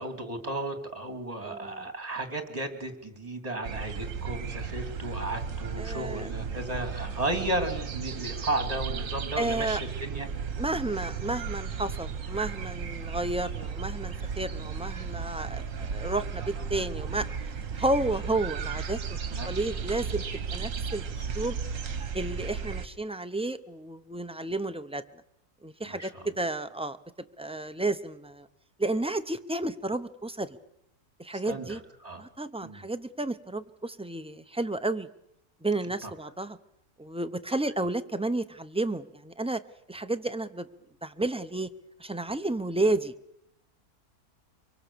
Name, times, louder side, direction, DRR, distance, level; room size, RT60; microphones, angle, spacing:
voice 1, 0.0-10.3 19.3-19.5 25.9-26.3 31.4-32.2 32.6-32.9 36.0-36.1, right 1 dB, 25° right, 8 dB, 2.8 m, -34 dB
voice 2, 1.4-1.9 5.8-6.3 9.4-9.8 10.6-17.3 17.8-19.2 19.5-21.0 21.3-21.6 22.1-25.0 25.6-27.0 27.4-28.5 28.8-30.6 31.2-31.8 32.2-35.1 35.6-36.6 37.0-39.6 39.9-40.7 41.0-41.7 42.0-43.1, right 2 dB, 10° right, 9 dB, 0.4 m, -31 dB
sound 1, 3.6-22.9, right 6 dB, 60° right, 1.6 m, -35 dB
24.5 x 24.0 x 6.9 m, 0.80 s
omnidirectional pair, 1.6 m